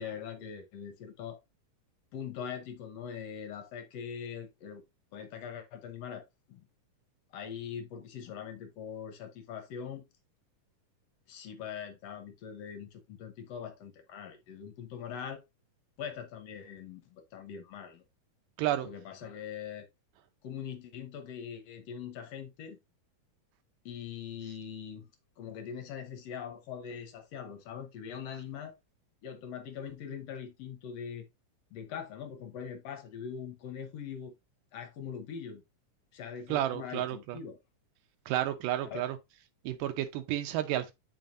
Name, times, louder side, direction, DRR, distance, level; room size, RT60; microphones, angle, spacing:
voice 1, 0.0-1.4 2.1-4.8 5.1-6.7 7.3-10.0 11.3-15.4 16.0-18.0 18.8-19.9 20.4-22.8 23.9-25.1 25.4-28.7 29.2-31.3 31.7-34.3 34.7-35.6 36.1-37.6 38.8-39.1, left 7 dB, 70° left, 1.7 m, -42 dB
voice 2, 18.6-18.9 36.5-37.4 38.3-39.2 39.7-40.9, right 12 dB, 85° right, 2.4 m, -31 dB
7.7 x 4.7 x 2.6 m
omnidirectional pair, 3.8 m